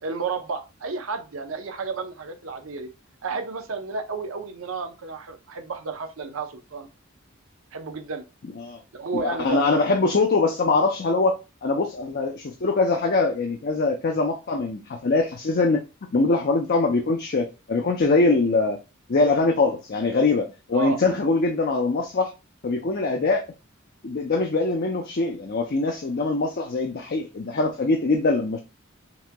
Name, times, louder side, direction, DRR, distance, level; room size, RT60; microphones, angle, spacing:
voice 1, 0.0-2.9 3.2-6.9 7.7-8.2 8.9-10.0 20.7-21.0, right 4 dB, 85° right, 0.7 m, -32 dB
voice 2, 9.1-15.8 16.1-18.8 19.1-22.3 22.6-23.5 24.0-28.6, left 3 dB, 50° left, 0.5 m, -23 dB
5.9 x 2.8 x 2.2 m
head